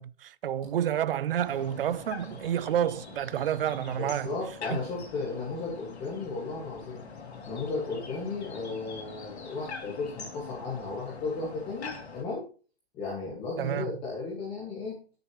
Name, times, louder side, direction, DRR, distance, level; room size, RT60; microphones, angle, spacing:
voice 1, 0.0-4.4 4.7-4.8 13.6-13.9, right 10 dB, 60° right, 0.5 m, -29 dB
sound 1, 1.4-12.2, left 4 dB, 80° left, 2.6 m, -44 dB
voice 2, 4.0-7.0 7.4-12.5 12.9-15.0, left 3 dB, 15° left, 1.8 m, -35 dB
12.0 x 6.8 x 3.1 m
hypercardioid pair, 170°, 32 cm